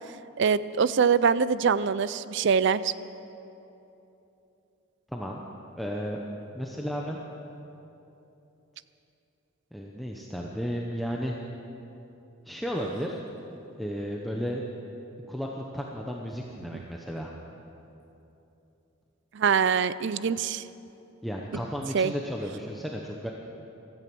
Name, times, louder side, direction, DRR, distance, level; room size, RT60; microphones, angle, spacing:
voice 1, 0.4-2.9 16.7-16.8 19.3-20.6 21.9-22.1, right 6 dB, 60° right, 16 dB, 0.4 m, -24 dB
voice 2, 5.1-5.4 5.7-6.2 6.5-7.2 9.7-11.4 12.4-13.2 13.8-14.6 15.3-17.3 21.2-23.3, equal, ahead, -2 dB, 0.8 m, -33 dB
16.5 x 13.5 x 6.1 m, 3.0 s
head